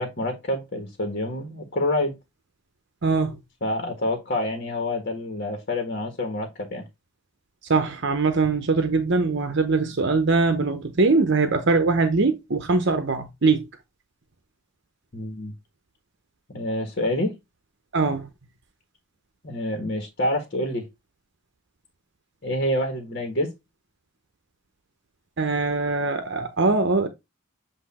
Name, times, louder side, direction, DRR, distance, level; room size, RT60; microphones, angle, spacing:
voice 1, 0.0-2.1 3.6-6.8 15.1-15.5 16.5-17.3 19.4-20.9 22.4-23.5, left 1 dB, 45° left, 1.5 m, -27 dB
voice 2, 3.0-3.4 7.7-13.7 17.9-18.3 25.4-27.1, right 3 dB, 55° right, 0.8 m, -22 dB
8.2 x 2.7 x 4.2 m
head